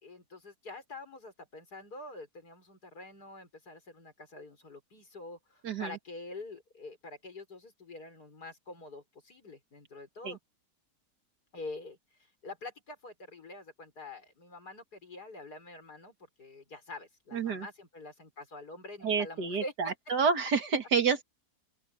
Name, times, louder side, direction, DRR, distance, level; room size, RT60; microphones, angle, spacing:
voice 1, 0.0-10.4 11.5-19.7, left 2 dB, 75° left, 5.8 m, -46 dB
voice 2, 17.3-17.7 19.0-21.2, right 5 dB, 90° right, 2.7 m, -29 dB
omnidirectional pair, 1.7 m